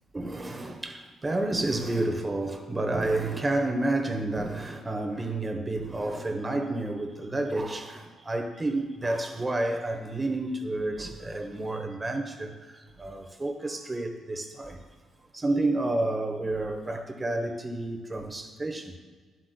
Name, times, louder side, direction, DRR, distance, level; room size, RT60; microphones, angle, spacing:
voice 1, 0.1-14.8 15.3-19.0, right 2 dB, 20° right, 0.9 m, -30 dB
11.5 x 7.9 x 2.2 m
cardioid pair, 90°, 0 cm